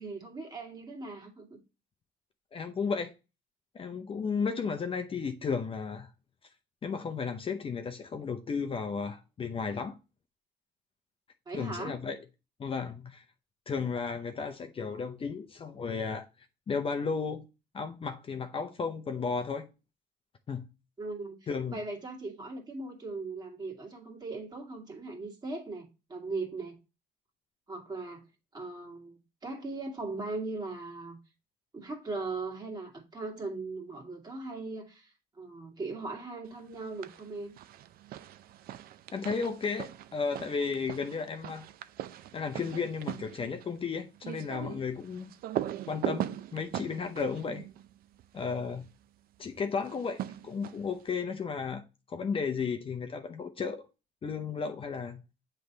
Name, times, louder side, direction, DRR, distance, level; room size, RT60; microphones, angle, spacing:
voice 1, 0.0-1.6 11.5-12.0 21.0-26.8 27.7-28.2 28.5-31.2 31.7-37.6, right 3 dB, 25° right, 2.0 m, -39 dB
voice 2, 2.5-3.1 3.7-6.1 6.8-10.0 11.5-12.2 12.6-13.2 13.7-16.3 16.7-17.5 17.7-19.7 20.5-20.6 21.5-21.8 39.1-41.7 42.3-45.3 45.9-47.7 48.3-48.9 49.4-51.8 52.1-53.8 54.2-55.2, left 5 dB, 35° left, 0.7 m, -34 dB
sound 1, 36.7-37.3 37.6-48.6 49.8-51.0, right 12 dB, 65° right, 0.5 m, -40 dB
7.8 x 3.3 x 4.0 m
cardioid pair, 110°, 17 cm